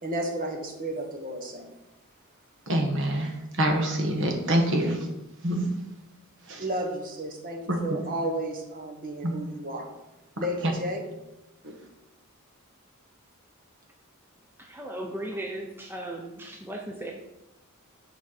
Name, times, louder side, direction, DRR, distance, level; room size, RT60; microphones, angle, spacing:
voice 1, 0.0-1.7 6.6-9.9 10.4-11.0, right 1 dB, 40° right, 2 dB, 1.2 m, -32 dB
voice 2, 2.7-5.1 5.4-5.7 6.5-6.6 7.7-8.0 9.2-9.3 10.4-10.5, right 1 dB, 60° right, 3 dB, 1.3 m, -26 dB
voice 3, 14.6-17.1, right 1 dB, 10° right, 1 dB, 0.6 m, -36 dB
9.0 x 4.6 x 4.2 m, 0.95 s
head